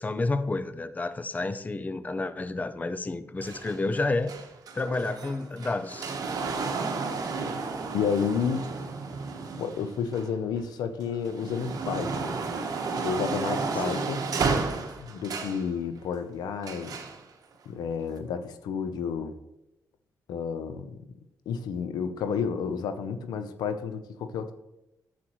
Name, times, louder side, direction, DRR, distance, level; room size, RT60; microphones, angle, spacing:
voice 1, 0.0-4.3 4.7-6.2 13.8-14.0, left 2 dB, 25° left, 13 dB, 0.5 m, -30 dB
sound 1, 3.4-10.6 11.1-15.7 16.6-17.2 18.1-18.2, right 4 dB, 65° right, 1.2 m, -32 dB
voice 2, 7.9-8.7 9.6-12.3 13.0-14.2 15.0-17.0 17.7-19.3 20.3-21.1 21.5-24.5, left 6 dB, 90° left, 9 dB, 0.7 m, -31 dB
9.9 x 7.6 x 3.1 m, 0.87 s
cardioid pair, 80°, 7 cm